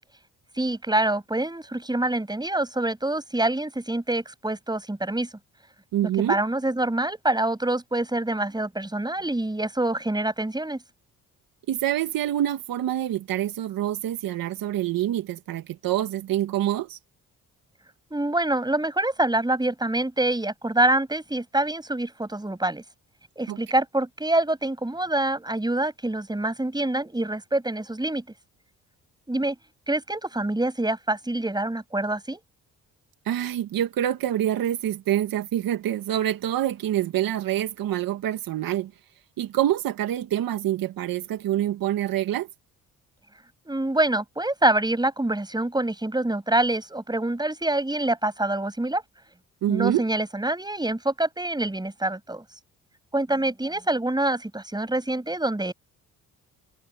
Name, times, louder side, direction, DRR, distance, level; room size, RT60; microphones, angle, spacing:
voice 1, 0.6-5.3 6.3-10.8 18.1-22.8 23.4-28.2 29.3-29.6 29.9-32.4 43.7-49.0 49.7-52.4 53.1-55.7, right 1 dB, 10° right, 7.3 m, -26 dB
voice 2, 5.9-6.4 11.7-17.0 23.5-23.6 33.3-38.9 39.4-42.5 49.6-50.0, right 12 dB, 75° right, 2.1 m, -26 dB
supercardioid pair, 70°, 34 cm